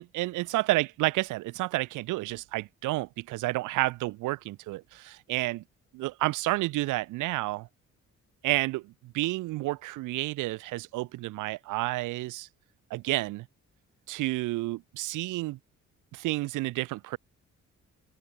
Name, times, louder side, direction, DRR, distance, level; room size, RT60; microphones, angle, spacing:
voice 1, 0.0-5.6 5.9-7.7 8.4-12.5 12.9-13.5 14.1-15.6 16.1-17.2, right 19 dB, 85° right, 0.6 m, -30 dB
open air
cardioid pair, 90°, 30 cm